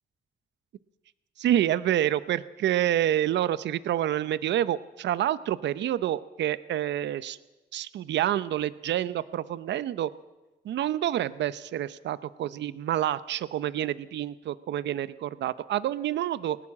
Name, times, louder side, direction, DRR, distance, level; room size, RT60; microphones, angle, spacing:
voice 1, 1.4-7.4 7.7-10.1 10.6-16.6, right 12 dB, 90° right, 17 dB, 0.7 m, -28 dB
19.5 x 19.0 x 7.3 m, 1.1 s
cardioid pair, 100°, 18 cm